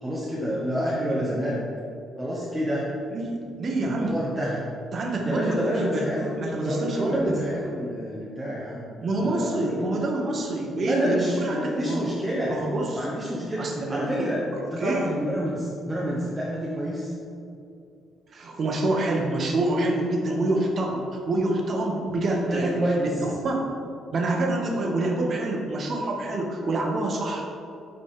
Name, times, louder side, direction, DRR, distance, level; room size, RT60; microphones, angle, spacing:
voice 1, 0.0-1.6 2.2-2.9 4.0-4.6 5.2-6.3 6.6-8.9 9.2-9.7 10.8-12.5 12.9-14.4 14.7-17.1 22.4-23.1, equal, 10° right, -6 dB, 0.9 m, -28 dB
voice 2, 3.1-4.1 4.9-6.1 6.4-7.4 9.0-12.0 12.5-13.1 13.6-14.3 14.5-15.1 18.3-22.8 23.2-23.6 24.1-27.4, right 2 dB, 40° right, 0 dB, 1.1 m, -27 dB
9.8 x 4.1 x 3.6 m, 2.6 s
cardioid pair, 160°, 0 cm